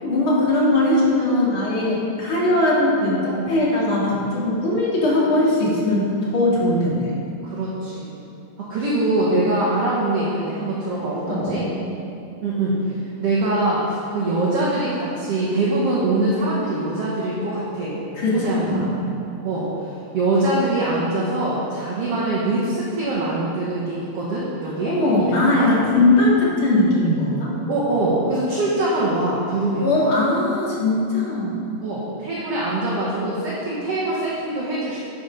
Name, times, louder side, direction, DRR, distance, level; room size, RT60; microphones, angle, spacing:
voice 1, 0.0-7.1 11.3-11.6 18.2-18.9 24.8-27.5 29.8-31.5, left 2 dB, 45° left, -6 dB, 2.7 m, -20 dB
voice 2, 7.4-8.1 8.6-11.6 12.4-18.0 18.3-19.1 19.4-25.7 27.7-29.9 31.8-35.0, right 2 dB, 60° right, -7 dB, 2.2 m, -23 dB
11.0 x 6.2 x 5.2 m, 2.6 s
omnidirectional pair, 3.5 m